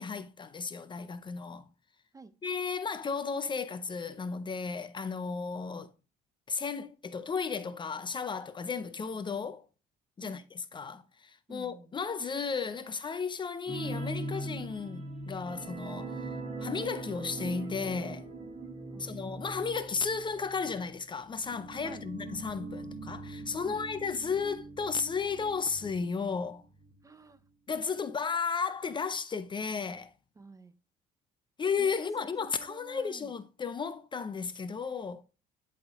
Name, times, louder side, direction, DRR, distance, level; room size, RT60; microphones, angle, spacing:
voice 1, 0.0-1.7 2.4-5.9 6.5-9.6 10.2-16.2 16.6-18.3 19.0-26.6 27.7-30.1 31.6-35.2, left 5 dB, 30° left, 0.5 m, -34 dB
voice 2, 11.5-11.9 18.9-19.1 21.8-22.1 23.6-23.8 27.0-27.4 30.4-30.7 31.8-33.3, right 3 dB, 20° right, 0.6 m, -51 dB
sound 1, 13.7-26.9 27.2-27.4 27.8-27.9, right 2 dB, 40° right, 2.1 m, -42 dB
10.5 x 3.6 x 3.5 m
cardioid pair, 110°, 17 cm